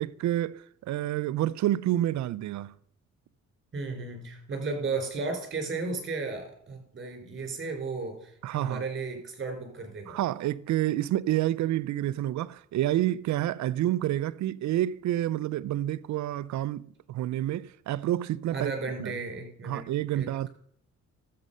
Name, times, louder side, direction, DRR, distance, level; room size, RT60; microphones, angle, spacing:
voice 1, 0.0-2.7 8.4-8.8 10.1-18.7 19.0-19.1 19.6-20.5, right 13 dB, 70° right, 0.5 m, -29 dB
voice 2, 3.7-10.2 18.5-19.9 20.1-20.5, right 4 dB, 40° right, 4.3 m, -34 dB
13.0 x 7.6 x 5.5 m
cardioid pair, 90°, 30 cm